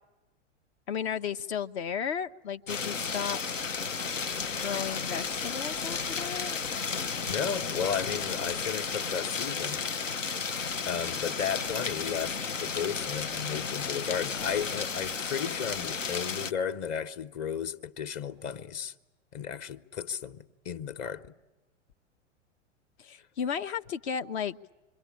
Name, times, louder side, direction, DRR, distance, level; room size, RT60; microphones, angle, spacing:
voice 1, 0.9-3.4 4.6-6.6 23.0-24.6, left 7 dB, 60° left, 0.9 m, -34 dB
sound 1, 2.7-16.5, left 5 dB, 90° left, 0.9 m, -33 dB
voice 2, 7.2-9.8 10.9-18.9 19.3-21.3, left 8 dB, 40° left, 1.3 m, -34 dB
27.5 x 23.0 x 8.7 m
figure-of-eight pair, 100°, 37 cm